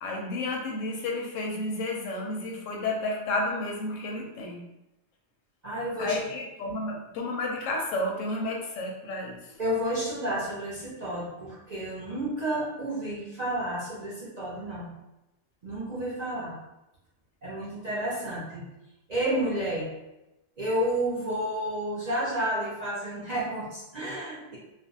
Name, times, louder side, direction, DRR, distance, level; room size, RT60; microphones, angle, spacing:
voice 1, 0.0-4.7 6.0-9.5, left 2 dB, 80° left, 0 dB, 0.9 m, -31 dB
voice 2, 5.6-6.2 9.6-14.9 15.6-16.6 17.4-18.6 19.1-19.9 20.6-24.6, right 1 dB, 50° right, -7 dB, 0.5 m, -31 dB
2.5 x 2.1 x 2.7 m, 0.93 s
omnidirectional pair, 1.3 m